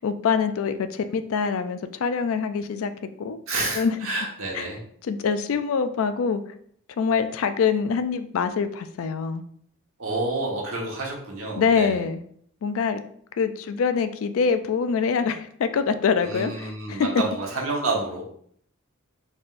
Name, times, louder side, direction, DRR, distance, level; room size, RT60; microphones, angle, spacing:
voice 1, 0.0-2.9 3.2-3.4 3.7-3.9 4.5-4.7 5.0-6.4 7.0-9.4 11.6-12.2 12.6-13.0 13.4-17.2, left 5 dB, 70° left, 10 dB, 0.4 m, -24 dB
voice 2, 3.5-4.8 10.0-12.0 16.2-18.2, right 2 dB, 70° right, -2 dB, 1.1 m, -29 dB
4.2 x 3.4 x 2.5 m, 0.64 s
head